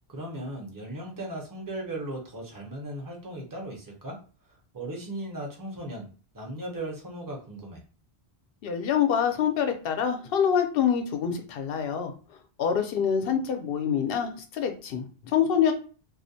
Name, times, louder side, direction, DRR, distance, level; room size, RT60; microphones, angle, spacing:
voice 1, 0.1-4.2 4.7-6.1 6.3-7.8, right 1 dB, 25° right, 0 dB, 0.6 m, -37 dB
voice 2, 8.6-12.1 12.6-15.7, left 8 dB, 70° left, 5 dB, 0.7 m, -26 dB
2.4 x 2.1 x 2.6 m, 0.37 s
omnidirectional pair, 1.0 m